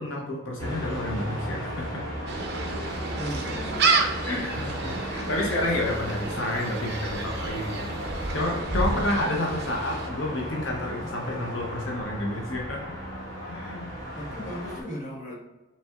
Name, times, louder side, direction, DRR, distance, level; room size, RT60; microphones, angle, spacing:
voice 1, 0.0-2.0 4.3-12.8 13.5-13.9, left 1 dB, 70° left, -1 dB, 0.7 m, -30 dB
sound 1, 0.6-14.8, equal, 15° left, 1.3 m, -35 dB
Gull seagull, 2.3-10.1, right 3 dB, 50° right, 0.6 m, -30 dB
voice 2, 3.2-4.1 4.7-5.0 14.1-15.3, equal, 40° left, -3 dB, 1.0 m, -38 dB
5.3 x 3.3 x 2.4 m, 1.1 s
head